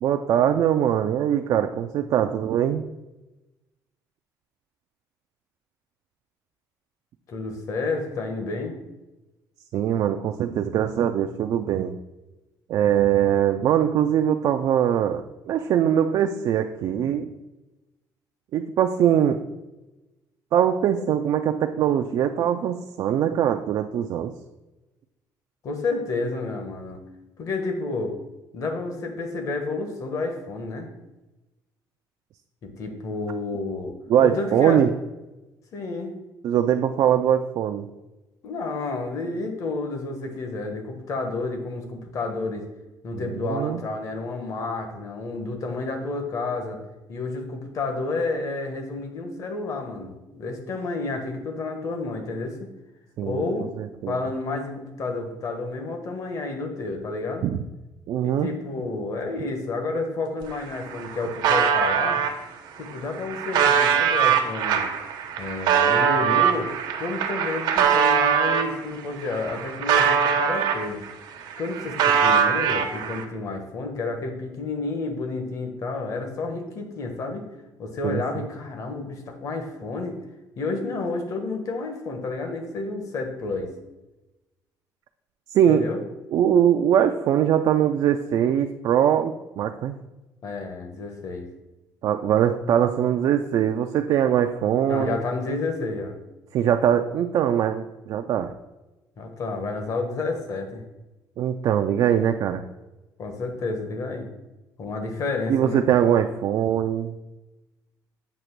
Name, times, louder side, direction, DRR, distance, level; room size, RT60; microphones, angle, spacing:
voice 1, 0.0-2.8 9.7-12.0 12.7-17.3 18.5-19.4 20.5-24.3 34.1-34.9 36.4-37.9 43.1-43.8 53.2-53.5 53.8-54.2 57.4-57.6 58.1-58.5 78.0-78.4 85.5-85.9 86.3-90.0 92.0-95.2 96.5-98.5 101.4-102.6 105.5-107.2, right 9 dB, 55° right, 6 dB, 0.4 m, -22 dB
voice 2, 7.3-8.8 25.6-27.0 27.4-28.1 28.5-30.9 32.6-33.9 34.2-34.8 35.7-36.1 38.4-42.6 43.0-46.8 47.1-52.6 53.2-53.7 54.1-57.5 58.2-62.2 62.8-64.9 65.4-66.7 67.0-71.0 71.6-77.4 77.8-80.2 80.6-83.7 85.7-86.0 90.4-91.5 94.8-96.1 99.2-100.8 103.2-104.3 104.8-105.8, left 3 dB, 45° left, 4 dB, 1.2 m, -30 dB
sound 1, 60.4-60.5 60.8-62.3 62.9-68.7 69.2-71.1 71.4-73.2, right 7 dB, 80° right, 0.9 m, -22 dB
7.8 x 3.0 x 6.0 m, 1.0 s
cardioid pair, 145°, 7 cm